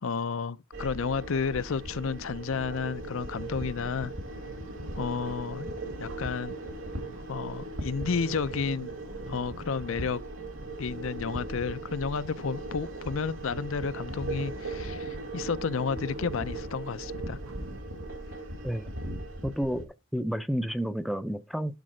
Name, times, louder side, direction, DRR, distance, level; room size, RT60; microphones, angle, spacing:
voice 1, 0.0-4.1 5.0-5.7 6.0-6.6 7.3-8.9 9.3-10.2 10.8-17.4, left 5 dB, 65° left, 0.5 m, -31 dB
sound 1, 0.7-19.8, right 2 dB, 65° right, 2.8 m, -38 dB
sound 2, 1.6-17.9, right 2 dB, 90° right, 1.3 m, -49 dB
voice 2, 19.4-21.8, equal, ahead, 0.5 m, -31 dB
12.0 x 4.2 x 4.9 m
head